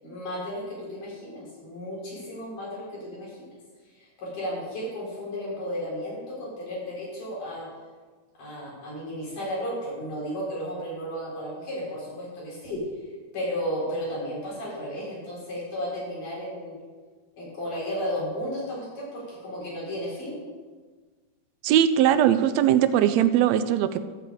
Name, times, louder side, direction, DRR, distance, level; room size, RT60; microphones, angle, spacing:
voice 1, 0.0-3.5 4.0-7.7 8.4-12.8 13.3-16.8 17.3-20.4, equal, 80° left, -6 dB, 5.6 m, -33 dB
voice 2, 21.6-24.1, right 10 dB, 80° right, 11 dB, 1.6 m, -20 dB
12.5 x 5.1 x 8.4 m, 1.4 s
omnidirectional pair, 3.5 m